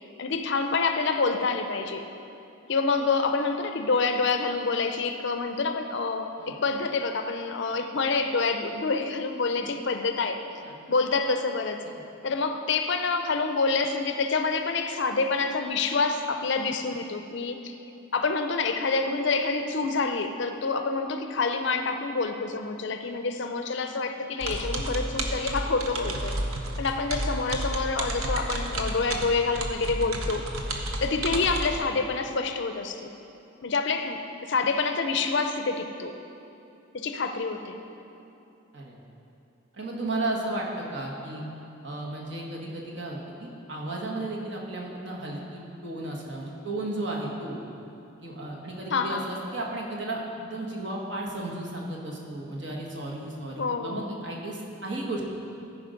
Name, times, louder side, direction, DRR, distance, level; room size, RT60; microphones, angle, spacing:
voice 1, 0.2-2.0 2.7-10.4 10.9-11.8 12.2-17.8 18.1-26.3 26.8-30.4 31.0-33.1 33.6-36.1 36.9-37.8 48.9-49.3 53.6-54.1, left 4 dB, 55° left, 7 dB, 0.5 m, -27 dB
sound 1, 24.4-31.8, right 1 dB, 75° right, 0.9 m, -31 dB
voice 2, 39.7-41.4 41.8-47.6 48.1-55.3, right 2 dB, 55° right, -2 dB, 1.4 m, -34 dB
13.5 x 5.1 x 5.1 m, 2.8 s
head